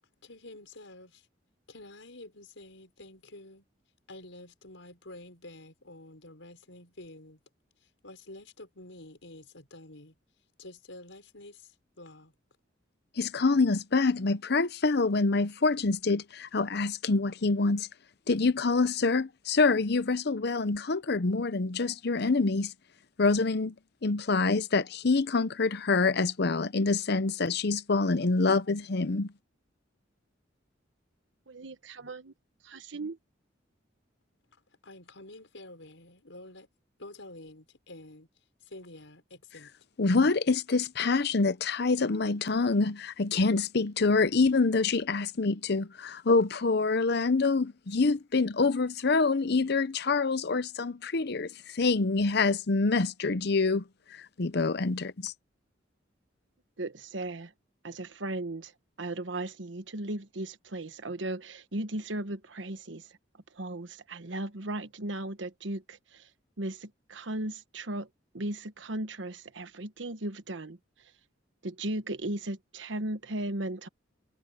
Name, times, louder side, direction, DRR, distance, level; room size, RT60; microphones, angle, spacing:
voice 1, 0.2-1.3 1.7-3.7 4.1-7.4 7.8-10.1 10.6-12.3 34.8-36.7 37.0-38.3 38.6-39.7, left 2 dB, 90° left, 5.2 m, -49 dB
voice 2, 13.2-17.9 18.3-22.7 23.2-23.8 24.0-29.3 40.0-55.3, left 3 dB, 60° left, 0.8 m, -26 dB
voice 3, 31.5-32.3 32.6-33.2 56.8-57.5 57.8-58.7 59.0-63.1 63.5-66.3 66.6-68.1 68.3-70.8 71.6-73.9, right 1 dB, 75° right, 1.3 m, -36 dB
head